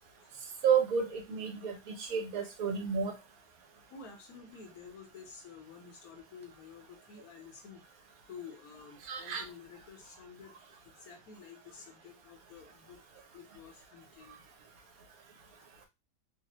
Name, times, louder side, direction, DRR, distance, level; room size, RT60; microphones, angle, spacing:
voice 1, 0.6-3.2 9.1-9.4, right 7 dB, 75° right, 4 dB, 1.1 m, -31 dB
voice 2, 3.9-7.8 8.3-10.6 10.8-14.4, left 6 dB, 80° left, 3 dB, 1.3 m, -51 dB
3.2 x 2.1 x 2.9 m, 0.23 s
omnidirectional pair, 1.6 m